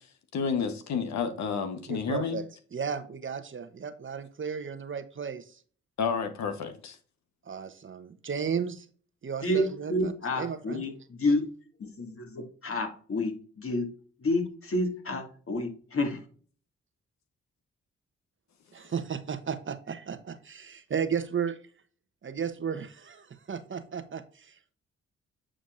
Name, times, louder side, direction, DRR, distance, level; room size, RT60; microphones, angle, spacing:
voice 1, 0.3-2.4 6.0-7.0, left 6 dB, 70° left, 7 dB, 1.2 m, -30 dB
voice 2, 1.9-2.5 2.7-5.6 7.4-8.9 9.2-10.8 18.7-21.5 22.2-24.8, right 7 dB, 40° right, 10 dB, 1.0 m, -34 dB
voice 3, 9.4-10.9 11.2-11.5 11.8-13.9 14.2-16.2, left 1 dB, 50° left, 4 dB, 2.2 m, -29 dB
8.7 x 5.1 x 2.6 m, 0.41 s
hypercardioid pair, 45°, 30 cm